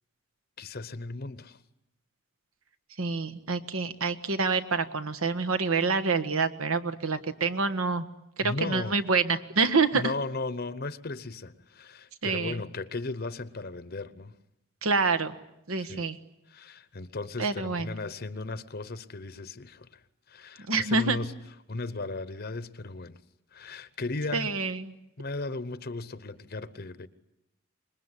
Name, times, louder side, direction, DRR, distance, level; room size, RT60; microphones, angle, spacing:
voice 1, 0.6-1.6 8.4-9.0 9.9-14.3 15.8-16.0 16.5-20.0 20.3-21.3 21.7-23.2 23.5-24.5 25.2-27.1, left 3 dB, 45° left, 0.9 m, -36 dB
voice 2, 3.0-8.1 8.4-10.1 12.2-12.6 14.8-15.4 15.7-16.2 17.4-17.9 20.7-21.2 24.3-24.9, right 4 dB, 80° right, 1.5 m, -27 dB
26.5 x 21.0 x 9.9 m
head